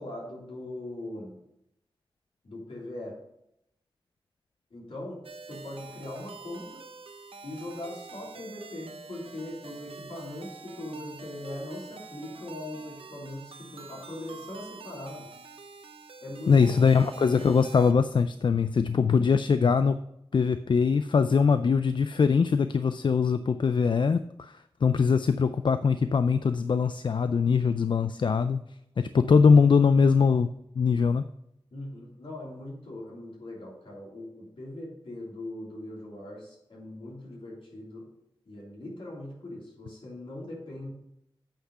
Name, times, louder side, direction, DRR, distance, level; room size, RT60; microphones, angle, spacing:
voice 1, 0.0-1.4 2.4-3.2 4.7-5.2 5.5-6.9 7.4-15.3 16.2-16.8 31.7-38.1 38.5-40.9, left 1 dB, 80° left, -4 dB, 3.4 m, -40 dB
sound 1, 5.2-17.9, right 4 dB, 85° right, 0.7 m, -46 dB
voice 2, 16.5-20.0 20.3-24.5 24.8-28.6 29.0-30.5 30.8-31.2, left 5 dB, 60° left, 11 dB, 0.4 m, -22 dB
8.6 x 5.9 x 5.5 m, 0.80 s
wide cardioid pair, 70°, 9 cm